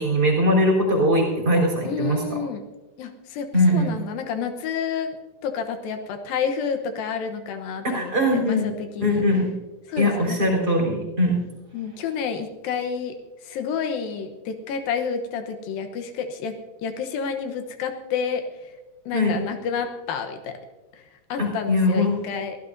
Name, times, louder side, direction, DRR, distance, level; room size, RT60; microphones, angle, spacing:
voice 1, 0.0-2.4 3.5-3.9 7.8-8.7 9.0-9.5 10.0-11.4 19.1-19.4 21.4-22.2, left 1 dB, 25° right, -1 dB, 4.4 m, -21 dB
voice 2, 1.8-2.6 3.0-3.5 3.7-5.2 5.4-9.2 9.9-10.4 11.7-13.2 13.4-18.4 19.1-20.6 20.9-21.0 21.3-22.6, left 6 dB, 85° left, 6 dB, 2.8 m, -29 dB
23.5 x 15.0 x 2.7 m, 1.1 s
omnidirectional pair, 4.0 m